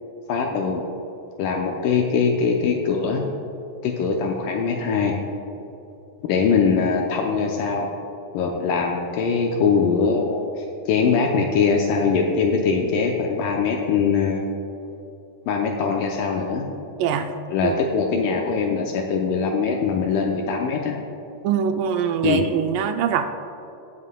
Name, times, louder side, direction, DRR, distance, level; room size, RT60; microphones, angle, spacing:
voice 1, 0.3-0.8 1.4-3.2 3.8-5.1 6.2-7.9 8.3-14.4 15.5-16.6 17.5-21.0 22.2-22.4, left 5 dB, 80° left, 1 dB, 2.2 m, -22 dB
voice 2, 21.4-23.3, right 8 dB, 80° right, 6 dB, 2.1 m, -22 dB
19.0 x 7.4 x 2.2 m, 2.9 s
omnidirectional pair, 4.0 m